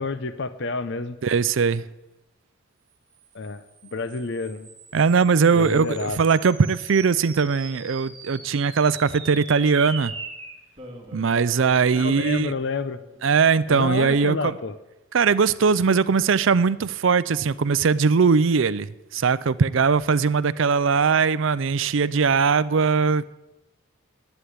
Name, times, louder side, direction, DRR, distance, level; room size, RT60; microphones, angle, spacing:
voice 1, 0.0-1.2 3.3-3.6 3.9-4.7 5.5-6.2 11.9-13.0 13.7-14.7, left 3 dB, 60° left, 0.7 m, -29 dB
voice 2, 1.2-1.8 4.9-10.1 11.1-12.5 13.2-14.5 15.1-23.3, right 5 dB, 65° right, 0.5 m, -20 dB
sound 1, 3.3-14.0, right 4 dB, 25° right, 2.1 m, -42 dB
11.5 x 8.2 x 9.5 m
head